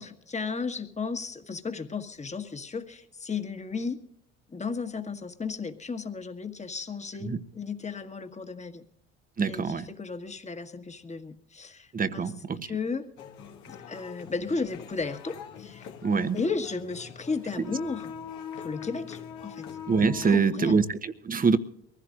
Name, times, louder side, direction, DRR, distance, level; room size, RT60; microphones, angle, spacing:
voice 1, 0.0-4.0 4.5-8.8 9.5-12.3 12.6-13.1 13.7-15.9 16.3-18.1 18.6-19.7 20.2-20.8, left 4 dB, 20° left, 1.7 m, -34 dB
voice 2, 9.4-9.9 11.9-12.7 16.0-16.4 17.6-17.7 19.9-21.6, right 5 dB, 25° right, 1.1 m, -25 dB
sound 1, 13.2-20.3, left 7 dB, 65° left, 1.8 m, -43 dB
23.0 x 15.5 x 2.6 m
hypercardioid pair, 70°, 31 cm